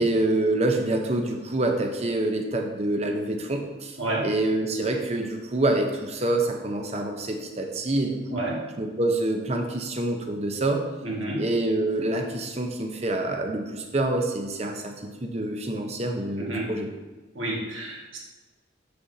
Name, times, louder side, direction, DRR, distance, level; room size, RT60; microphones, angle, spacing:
voice 1, 0.0-4.0 4.2-8.4 8.8-10.8 11.4-14.9 15.2-16.9, right 2 dB, 30° right, 3 dB, 0.7 m, -26 dB
voice 2, 11.0-11.4 16.4-16.7 17.3-18.2, right 1 dB, 75° right, -4 dB, 1.8 m, -30 dB
7.3 x 6.7 x 2.7 m, 1.2 s
head